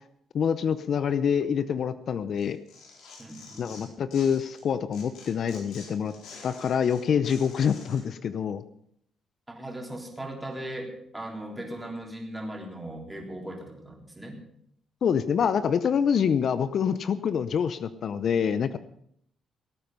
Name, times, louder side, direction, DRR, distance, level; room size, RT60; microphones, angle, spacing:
voice 1, 0.3-2.6 3.6-6.1 6.4-8.6 15.0-18.8, left 7 dB, 60° left, 13 dB, 0.6 m, -26 dB
Tearing, 2.4-4.6 4.9-8.0, left 4 dB, 80° left, 4.5 m, -48 dB
voice 2, 3.2-3.7 9.5-14.4, right 1 dB, 10° right, 0 dB, 3.6 m, -38 dB
17.5 x 9.1 x 5.5 m, 0.70 s
cardioid pair, 90°, 0 cm